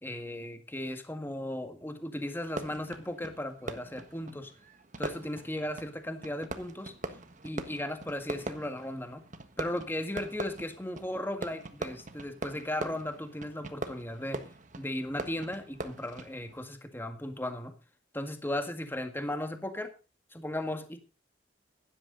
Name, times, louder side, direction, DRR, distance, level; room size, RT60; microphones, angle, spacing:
voice 1, 0.0-4.5 5.0-6.9 7.4-9.3 9.6-14.4 14.8-17.7 18.1-19.9 20.3-21.0, left 1 dB, 10° left, 7 dB, 1.8 m, -36 dB
Fireworks, 2.4-16.7, right 2 dB, 40° right, 1.5 m, -42 dB
16.5 x 11.5 x 3.9 m, 0.32 s
head